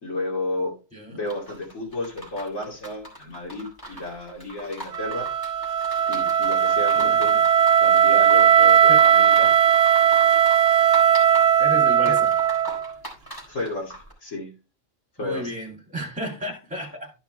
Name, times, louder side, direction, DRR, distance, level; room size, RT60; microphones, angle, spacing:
voice 1, 0.0-0.7 1.1-5.3 6.1-7.4 7.8-9.5 12.0-12.2 13.5-14.5 15.2-15.4, left 2 dB, 75° left, 3.1 m, -32 dB
sound 1, 1.3-14.1, right 1 dB, 15° left, 3.9 m, -41 dB
Wind instrument woodwind instrument, 4.9-12.9, right 8 dB, 60° right, 1.0 m, -18 dB
voice 2, 11.6-12.3 15.2-17.1, equal, 5° right, 2.5 m, -33 dB
12.5 x 5.7 x 3.2 m
omnidirectional pair, 1.4 m